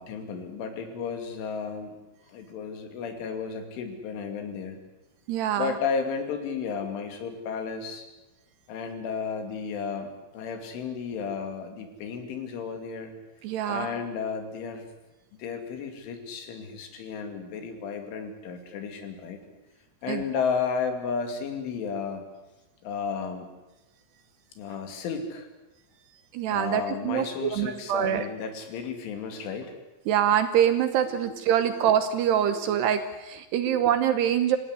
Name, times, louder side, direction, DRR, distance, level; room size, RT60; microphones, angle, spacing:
voice 1, 0.0-2.0 2.3-4.8 5.6-8.1 8.7-13.1 13.7-14.9 15.3-19.4 20.0-22.2 22.8-23.5 24.6-25.5 26.5-29.8 31.1-31.4 31.6-31.8 32.5-32.6 33.7-33.8, left 6 dB, 75° left, 7 dB, 5.0 m, -33 dB
voice 2, 5.3-5.7 13.4-13.9 20.1-20.2 26.3-28.3 30.1-34.6, right 9 dB, 70° right, 10 dB, 2.8 m, -25 dB
26.0 x 17.0 x 9.6 m, 1.0 s
omnidirectional pair, 5.6 m